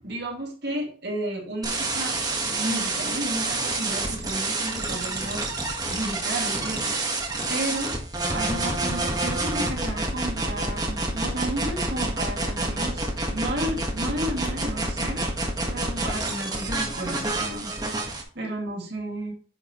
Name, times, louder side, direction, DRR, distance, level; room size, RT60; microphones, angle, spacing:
voice 1, 0.0-2.2 2.4-7.2 7.5-7.9 8.3-15.2 15.7-19.3, right 1 dB, 55° right, 0 dB, 2.3 m, -33 dB
sound 1, 1.6-18.2, right 2 dB, 20° right, 1.4 m, -28 dB
9.1 x 6.4 x 3.0 m, 0.42 s
head